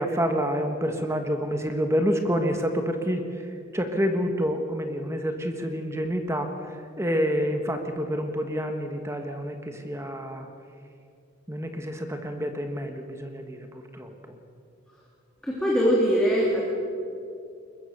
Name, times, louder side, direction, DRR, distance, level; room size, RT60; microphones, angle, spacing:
voice 1, 0.0-3.2 3.7-6.5 7.0-10.5 11.5-14.1, equal, 15° right, 5 dB, 1.3 m, -28 dB
voice 2, 15.4-16.6, equal, 5° left, -4 dB, 2.8 m, -22 dB
22.0 x 20.5 x 6.6 m, 2.5 s
head